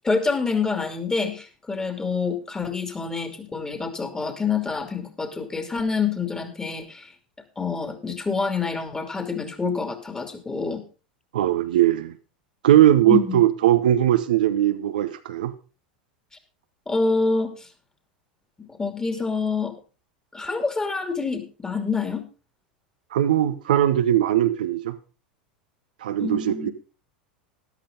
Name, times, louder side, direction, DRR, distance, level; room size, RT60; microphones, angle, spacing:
voice 1, 0.0-7.1 7.6-10.8 13.1-13.4 16.9-17.7 18.6-19.7 20.3-22.2 26.2-26.7, left 4 dB, 15° left, 6 dB, 2.7 m, -27 dB
voice 2, 11.3-12.1 12.6-15.5 23.1-25.0 26.0-26.7, right 12 dB, 65° right, 9 dB, 1.0 m, -19 dB
13.5 x 11.5 x 3.9 m, 0.34 s
figure-of-eight pair, 85°, 5 cm